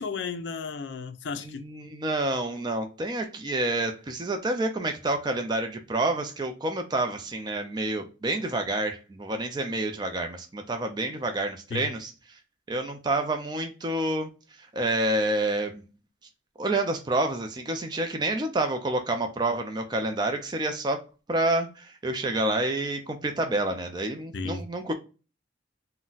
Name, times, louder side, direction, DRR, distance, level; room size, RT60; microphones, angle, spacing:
voice 1, 0.0-1.6 11.7-11.9 24.3-24.6, left 4 dB, 65° left, 0.4 m, -33 dB
voice 2, 1.4-12.4 12.7-15.8 16.6-21.0 21.3-24.9, right 2 dB, 20° right, 0.4 m, -28 dB
3.9 x 2.1 x 2.3 m
head